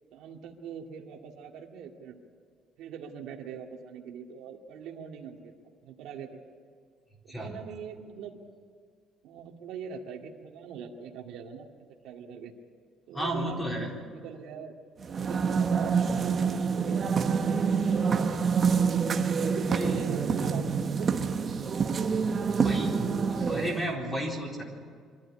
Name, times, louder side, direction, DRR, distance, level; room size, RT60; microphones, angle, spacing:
voice 1, 0.1-2.2 2.8-5.6 5.8-6.4 7.2-8.4 9.2-11.7 12.0-12.5 13.1-14.8 15.2-18.7 19.4-21.1 22.4-23.7, right 6 dB, 75° right, 1 dB, 2.1 m, -43 dB
voice 2, 13.1-13.9 19.7-20.1 22.6-24.6, equal, 15° left, -1 dB, 4.0 m, -33 dB
sound 1, 15.0-23.9, right 6 dB, 30° right, 1.1 m, -27 dB
24.5 x 13.5 x 9.9 m, 2.1 s
cardioid pair, 160°, 0 cm